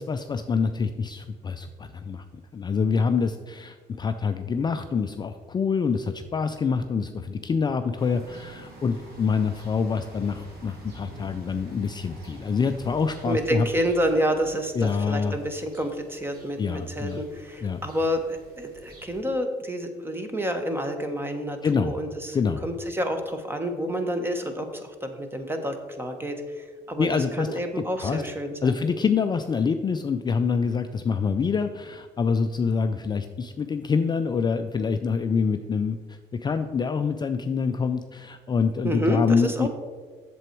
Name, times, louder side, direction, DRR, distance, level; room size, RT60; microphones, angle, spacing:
voice 1, 0.0-2.2 2.5-13.7 14.7-15.4 16.6-17.2 17.6-17.8 21.6-21.9 22.3-22.6 27.0-27.6 28.0-28.2 28.6-39.7, left 5 dB, 25° left, 8 dB, 0.4 m, -26 dB
sound 1, 8.0-19.2, right 1 dB, 60° right, 2.5 m, -48 dB
voice 2, 13.2-22.4 22.6-28.8 38.8-39.7, equal, 15° right, 6 dB, 1.1 m, -29 dB
7.8 x 7.0 x 4.5 m, 1.5 s
cardioid pair, 110°, 17 cm